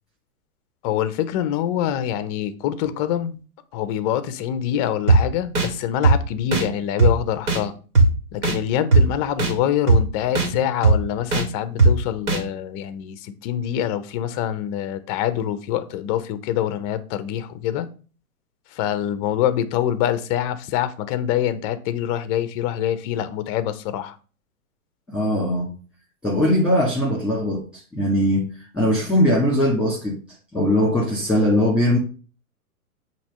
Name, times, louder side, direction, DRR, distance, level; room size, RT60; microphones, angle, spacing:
voice 1, 0.8-3.4 3.7-7.7 8.3-17.9 18.7-24.1, left 10 dB, 25° left, 0.6 m, -25 dB
sound 1, 5.1-5.2 5.6-5.7 6.0-6.2 6.5-6.6 7.0-7.1 7.5-7.6 8.0-8.1 8.4-8.6 8.9-9.0 9.4-9.5 9.9-10.0 10.3-10.5 10.8-11.0 11.3-11.4 11.8-11.9 12.3-12.4, right 3 dB, 70° right, 2.1 m, -15 dB
voice 2, 25.1-25.7 26.2-28.5 28.7-30.2 30.5-32.0, left 1 dB, ahead, 2.0 m, -20 dB
8.7 x 3.0 x 5.4 m
hypercardioid pair, 120°, 45 cm